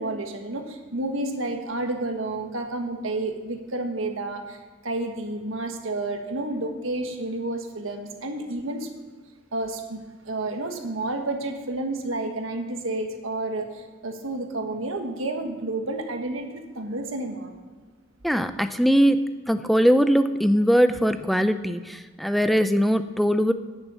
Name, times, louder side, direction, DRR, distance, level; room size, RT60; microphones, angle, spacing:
voice 1, 0.0-4.6 4.8-8.9 9.5-17.5, right 2 dB, 80° right, 4 dB, 1.4 m, -30 dB
voice 2, 18.2-19.2 19.5-23.5, equal, ahead, 10 dB, 0.4 m, -21 dB
10.5 x 6.8 x 6.9 m, 1.5 s
head